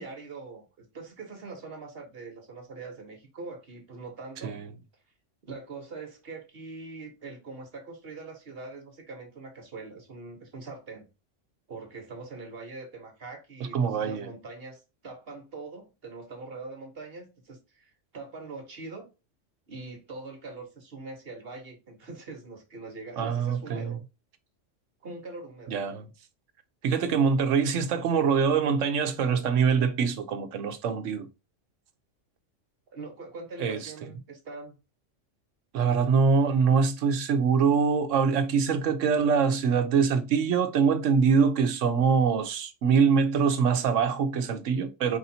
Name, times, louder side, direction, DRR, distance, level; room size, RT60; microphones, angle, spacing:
voice 1, 0.0-4.6 5.4-11.1 11.7-19.1 19.7-24.0 25.0-25.8 32.9-34.8, right 3 dB, 55° right, 1.2 m, -42 dB
voice 2, 13.7-14.3 23.2-24.0 25.7-26.0 26.8-31.3 33.6-33.9 35.7-45.2, right 6 dB, 75° right, 1.1 m, -24 dB
4.8 x 4.1 x 2.7 m
omnidirectional pair, 1.3 m